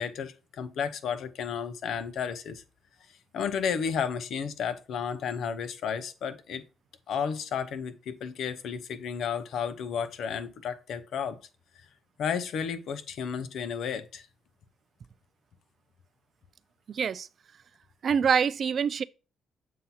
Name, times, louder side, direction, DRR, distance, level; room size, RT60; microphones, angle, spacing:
voice 1, 0.0-2.6 3.3-6.6 7.1-11.4 12.2-14.3, left 7 dB, 70° left, 0.7 m, -32 dB
voice 2, 16.9-17.3 18.0-19.0, right 7 dB, 50° right, 0.3 m, -25 dB
7.4 x 2.8 x 5.5 m
cardioid pair, 90°, 0 cm